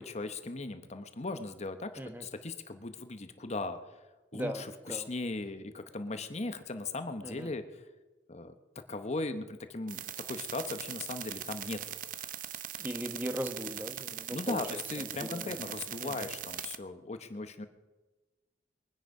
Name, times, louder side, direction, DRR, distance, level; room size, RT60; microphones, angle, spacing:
voice 1, 0.0-3.8 4.3-7.8 8.3-8.5 8.9-11.9 14.3-17.7, left 3 dB, 40° left, 9 dB, 0.9 m, -38 dB
voice 2, 4.3-5.1 7.2-7.5 12.8-15.7 16.0-16.2, equal, 10° right, 7 dB, 1.2 m, -39 dB
sound 1, 9.9-16.8, right 11 dB, 50° right, 0.7 m, -41 dB
22.5 x 10.0 x 5.4 m, 1.2 s
head